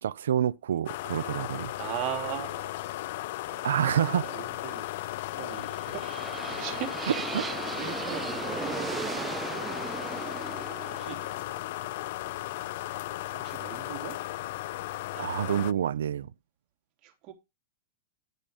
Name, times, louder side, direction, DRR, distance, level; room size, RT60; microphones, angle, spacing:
voice 1, 0.0-1.7 3.6-4.3 7.3-7.4 15.2-16.3, right 9 dB, 90° right, 0.5 m, -27 dB
sound 1, 0.9-15.7, left 16 dB, 60° left, 0.4 m, -36 dB
voice 2, 1.7-3.0 3.4-3.7 4.1-4.9 5.2-7.3 7.7-9.3 11.0-11.2 11.7-11.9 13.3-14.2 15.1-15.6 17.0-17.3, right 12 dB, 40° right, 3.3 m, -40 dB
sound 2, 5.3-13.3, right 6 dB, 15° right, 0.6 m, -38 dB
11.5 x 6.2 x 5.0 m
hypercardioid pair, 140°, 0 cm